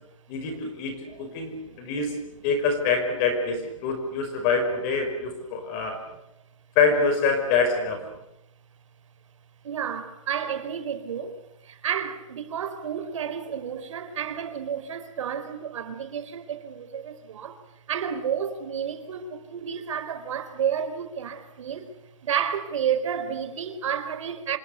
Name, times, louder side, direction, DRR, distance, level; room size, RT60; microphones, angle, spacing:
voice 1, 0.3-2.2 2.4-6.0 6.8-8.0, left 4 dB, 30° left, 5.6 m, -25 dB
voice 2, 9.6-11.4 11.6-17.6 17.9-21.9 22.2-24.6, right 8 dB, 70° right, 4.2 m, -31 dB
27.0 x 20.5 x 8.2 m
hypercardioid pair, 170°, 17 cm